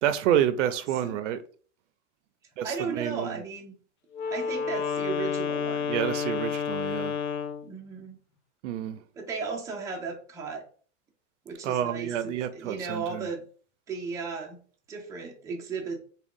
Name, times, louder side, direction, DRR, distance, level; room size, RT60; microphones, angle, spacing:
voice 1, 0.0-1.4 2.6-2.7 3.0-3.4 5.9-7.2 8.6-9.0 11.6-13.3, right 10 dB, 70° right, 0.5 m, -28 dB
voice 2, 2.6-3.8 4.3-6.0 7.6-8.2 9.1-10.6 11.4-13.4 13.9-14.6 14.9-16.0, right 5 dB, 10° right, 0.5 m, -35 dB
Wind instrument woodwind instrument, 4.1-7.7, left 6 dB, 70° left, 0.6 m, -30 dB
3.5 x 2.3 x 3.5 m
supercardioid pair, 145°, 38 cm